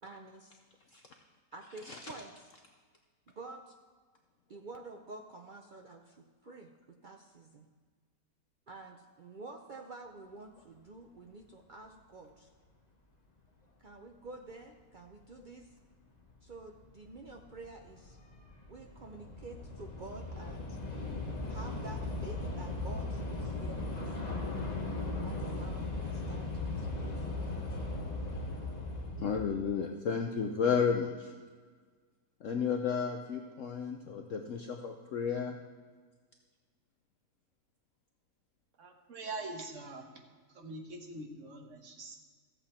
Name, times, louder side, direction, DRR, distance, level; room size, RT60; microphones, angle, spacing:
voice 1, 0.0-0.6 1.5-2.5 3.4-3.8 4.5-7.7 8.7-12.5 13.8-15.8 16.4-18.2 18.7-20.8 21.5-24.2 25.2-27.8, right 3 dB, 85° right, 3 dB, 0.4 m, -49 dB
Train / Subway metro underground, 15.4-15.5 16.3-16.6 16.8-29.4, left 2 dB, 30° left, 1.1 m, -38 dB
voice 2, 29.2-31.3 32.4-35.6, left 6 dB, 60° left, 4 dB, 0.9 m, -32 dB
voice 3, 38.8-40.1 40.5-42.2, right 2 dB, 50° right, 2 dB, 1.5 m, -43 dB
14.0 x 8.0 x 4.3 m, 1.5 s
omnidirectional pair, 1.7 m